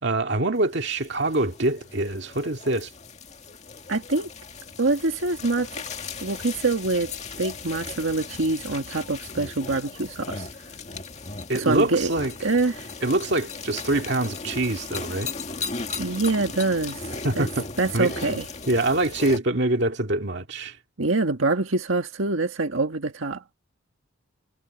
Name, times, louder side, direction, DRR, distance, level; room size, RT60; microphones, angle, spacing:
voice 1, 0.0-2.9 11.5-12.3 13.0-15.3 17.2-17.7 17.9-18.1 18.7-20.8, right 2 dB, 60° right, 2.2 m, -24 dB
sound 1, 0.5-19.4, left 4 dB, 35° left, 2.1 m, -37 dB
voice 2, 3.9-4.3 4.8-5.8 6.2-10.5 11.5-12.1 12.4-12.9 16.0-17.5 17.8-18.4 21.0-23.4, right 3 dB, 80° right, 1.7 m, -25 dB
head